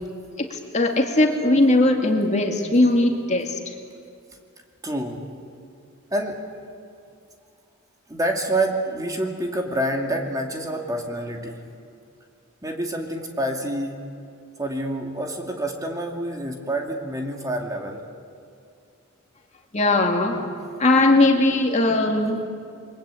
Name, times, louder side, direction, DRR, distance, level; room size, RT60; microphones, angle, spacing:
voice 1, 0.4-3.7 19.7-20.5 20.8-22.4, left 2 dB, 35° left, 3 dB, 2.2 m, -19 dB
voice 2, 4.8-5.2 6.1-6.4 8.1-11.6 12.6-14.0 14.6-18.0, right 1 dB, 15° right, 2 dB, 2.3 m, -27 dB
28.5 x 22.5 x 8.4 m, 2.4 s
head